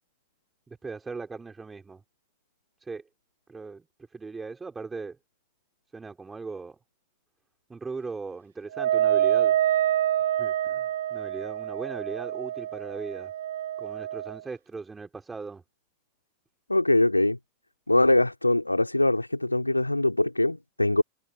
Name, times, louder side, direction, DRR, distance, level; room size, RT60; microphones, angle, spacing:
voice 1, 0.7-2.0 2.8-3.0 3.5-3.8 4.1-5.2 5.9-6.8 7.7-9.6 10.4-13.3 13.8-15.6, right 4 dB, 15° right, 5.6 m, -38 dB
Wind instrument woodwind instrument, 8.7-14.4, right 11 dB, 60° right, 0.8 m, -26 dB
voice 2, 16.7-17.4 17.9-21.0, left 2 dB, 85° left, 3.4 m, -22 dB
figure-of-eight pair, 90°, 0 cm